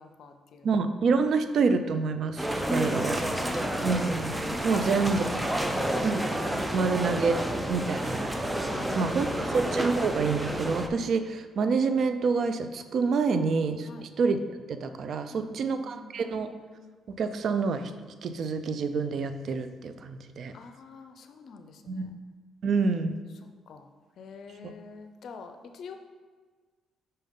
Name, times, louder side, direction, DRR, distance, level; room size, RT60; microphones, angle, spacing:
voice 1, 0.0-0.8 2.7-4.0 4.7-6.1 8.7-9.9 13.9-14.1 15.3-16.2 20.5-22.1 23.7-23.9 24.2-26.0, left 4 dB, 65° left, 7 dB, 0.5 m, -46 dB
voice 2, 0.6-3.3 3.8-4.3 4.6-5.2 6.0-6.2 6.7-7.4 7.7-8.3 9.0-13.9 14.2-14.4 14.7-16.5 17.1-17.9 18.2-20.5 21.9-22.1 22.6-23.2, right 4 dB, 60° right, 9 dB, 0.4 m, -27 dB
sound 1, 2.4-10.9, right 1 dB, 10° right, 0.5 m, -30 dB
5.5 x 5.4 x 3.6 m, 1.4 s
cardioid pair, 90°, 0 cm